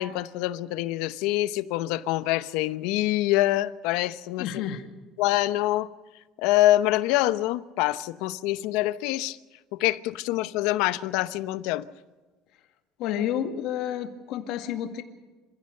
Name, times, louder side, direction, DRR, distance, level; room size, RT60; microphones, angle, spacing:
voice 1, 0.0-4.5 5.2-5.9 6.4-9.4 9.7-11.8, left 16 dB, 80° left, 0.8 m, -25 dB
voice 2, 4.4-4.9 13.0-15.0, left 10 dB, 65° left, 2.1 m, -30 dB
27.0 x 16.0 x 6.6 m
cardioid pair, 145°, 0 cm